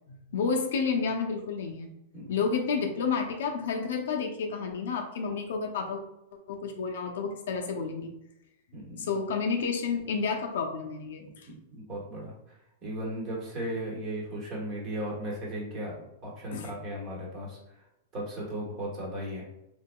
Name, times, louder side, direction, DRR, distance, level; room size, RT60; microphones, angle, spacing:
voice 1, 0.1-1.9 2.3-6.0 6.5-8.1 9.0-11.5 16.5-16.7, left 5 dB, 75° left, 3 dB, 0.6 m, -30 dB
voice 2, 8.7-9.1 11.5-12.3 12.8-15.9 16.2-17.6 18.1-19.4, right 1 dB, 30° right, -3 dB, 1.2 m, -36 dB
3.6 x 3.2 x 2.3 m, 0.87 s
supercardioid pair, 160°, 0 cm